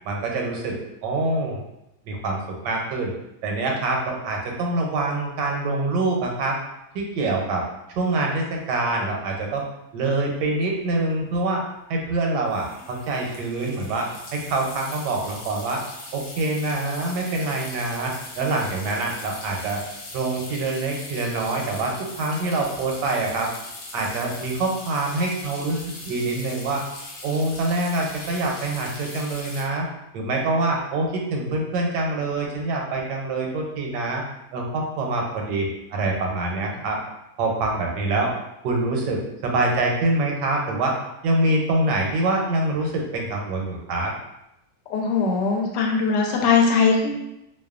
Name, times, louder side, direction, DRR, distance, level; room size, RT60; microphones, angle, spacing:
voice 1, 0.0-0.7 1.0-1.6 2.1-3.1 3.4-6.6 6.9-7.6 8.0-9.7 9.9-15.8 16.1-19.8 20.1-23.5 23.9-26.8 27.2-29.9 30.1-34.2 34.5-37.0 37.4-38.3 38.6-40.9 41.2-44.1, right 2 dB, 85° right, 0 dB, 1.2 m, -25 dB
sound 1, 10.5-10.6 10.8-11.1 12.5-29.6, left 2 dB, 65° left, 0.8 m, -40 dB
voice 2, 44.9-47.2, left 5 dB, 90° left, 1 dB, 1.2 m, -20 dB
2.9 x 2.1 x 2.3 m, 0.86 s
omnidirectional pair, 1.8 m